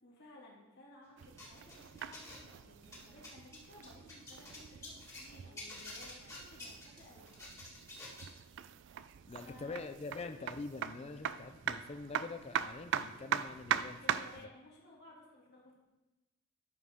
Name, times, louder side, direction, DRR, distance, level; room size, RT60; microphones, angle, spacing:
voice 1, 0.0-7.3 8.9-9.8 14.0-15.7, left 1 dB, 50° left, -4 dB, 2.5 m, -57 dB
sound 1, 1.2-14.5, right 9 dB, 60° right, 0.3 m, -41 dB
sound 2, 1.4-2.5 2.8-5.3 5.6-8.3, left 2 dB, 15° left, 1.8 m, -49 dB
voice 2, 9.3-14.3, left 3 dB, 30° left, 7 dB, 0.4 m, -45 dB
11.0 x 6.3 x 3.6 m, 1.1 s
head